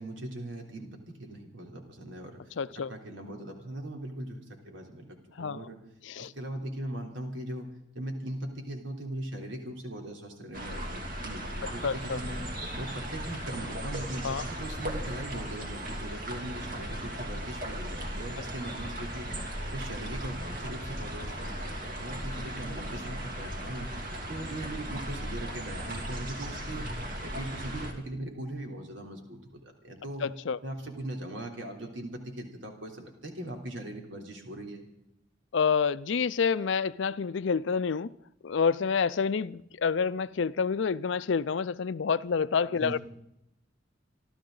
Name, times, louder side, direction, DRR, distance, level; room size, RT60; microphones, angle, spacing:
voice 1, 0.0-5.8 6.2-7.7 7.9-12.4 12.7-19.3 19.7-23.9 24.3-30.3 30.6-34.9 42.8-43.0, right 1 dB, 80° right, 3.4 m, -40 dB
voice 2, 2.6-2.9 5.4-5.6 6.1-6.3 11.8-12.2 14.2-14.4 30.2-30.6 35.5-38.1 38.4-43.0, left 6 dB, 70° left, 0.5 m, -28 dB
sound 1, 10.5-27.9, equal, 50° right, 2.5 m, -37 dB
27.0 x 13.0 x 3.9 m
head